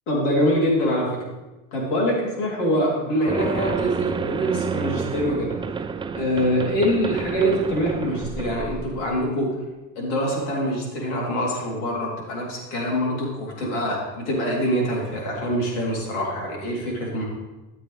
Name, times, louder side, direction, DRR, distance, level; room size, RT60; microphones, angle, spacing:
voice 1, 0.1-1.2 1.7-5.5 6.1-9.5 9.9-17.2, equal, 85° left, -2 dB, 3.4 m, -24 dB
sound 1, 3.3-9.3, right 5 dB, 15° right, 0.4 m, -30 dB
13.0 x 7.5 x 3.4 m, 1.1 s
supercardioid pair, 100°, 34 cm